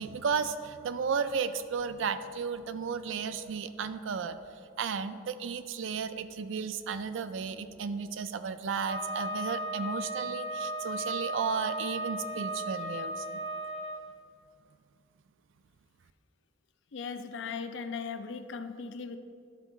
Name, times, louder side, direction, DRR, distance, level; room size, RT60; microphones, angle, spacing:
voice 1, 0.0-4.4 4.8-13.4, right 6 dB, 70° right, 11 dB, 0.4 m, -34 dB
Wind instrument woodwind instrument, 8.8-14.0, equal, 90° right, 1.1 m, -36 dB
voice 2, 16.9-19.2, left 5 dB, 60° left, 9 dB, 0.4 m, -38 dB
10.5 x 4.0 x 4.5 m, 2.3 s
head